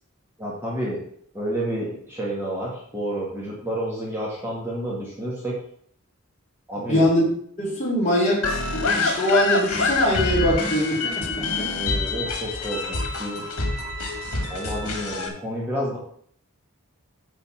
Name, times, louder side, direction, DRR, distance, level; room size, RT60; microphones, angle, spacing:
voice 1, 0.4-1.0 1.3-5.6 6.7-7.0 11.7-13.4 14.5-16.0, right 1 dB, 10° right, -5 dB, 1.6 m, -30 dB
voice 2, 6.9-7.3 7.6-11.7, equal, 30° left, -5 dB, 3.7 m, -23 dB
sound 1, 8.4-15.3, left 3 dB, 85° left, 1.5 m, -26 dB
9.0 x 4.1 x 5.7 m, 0.63 s
head